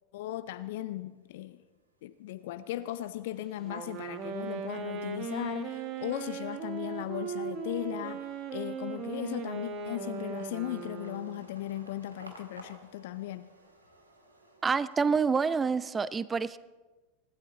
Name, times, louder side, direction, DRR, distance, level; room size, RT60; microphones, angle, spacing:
voice 1, 0.1-1.6 2.0-13.5, left 14 dB, 60° left, 0.5 m, -37 dB
sound 1, 1.0-1.6 2.0-15.5, right 2 dB, 80° right, 1.9 m, -57 dB
Wind instrument woodwind instrument, 3.6-11.5, right 6 dB, 40° right, 1.4 m, -38 dB
voice 2, 14.6-16.6, right 5 dB, 20° right, 0.5 m, -27 dB
25.0 x 12.5 x 3.9 m
figure-of-eight pair, 80°, 0 cm